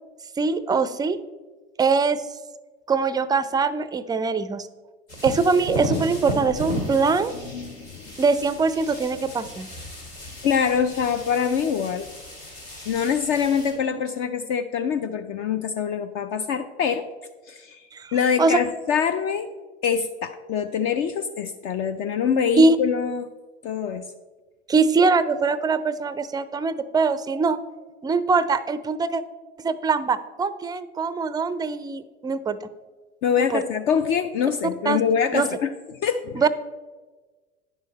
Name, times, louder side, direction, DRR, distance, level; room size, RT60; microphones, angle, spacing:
voice 1, 0.4-1.2 1.8-2.2 2.9-4.7 5.2-7.3 8.2-9.7 17.9-18.6 22.6-22.8 24.7-27.6 28.0-29.2 29.6-32.6 33.4-33.6 34.9-35.0 35.3-35.5 36.3-36.5, right 4 dB, 15° right, 15 dB, 0.4 m, -22 dB
sound 1, 5.1-13.7, equal, 80° left, 2.7 m, -35 dB
voice 2, 7.5-8.1 10.4-12.0 12.9-17.1 17.5-19.5 19.8-23.3 23.6-24.0 33.2-35.7 36.0-36.4, left 7 dB, 45° left, 8 dB, 0.5 m, -24 dB
9.9 x 6.4 x 4.0 m, 1.3 s
figure-of-eight pair, 75°, 31 cm